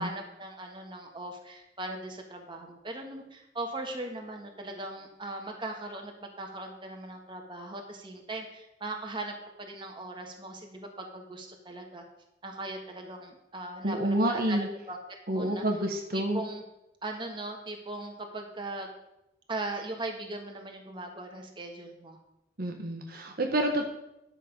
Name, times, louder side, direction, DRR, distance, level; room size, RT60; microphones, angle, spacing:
voice 1, 0.0-12.0 12.4-15.0 15.3-15.6 16.1-16.6 17.0-18.9 19.5-22.2, right 2 dB, 30° right, 2 dB, 1.4 m, -39 dB
voice 2, 13.8-14.7 15.3-16.4 22.6-23.8, right 1 dB, 55° right, 3 dB, 1.2 m, -28 dB
10.5 x 6.4 x 5.2 m, 0.87 s
head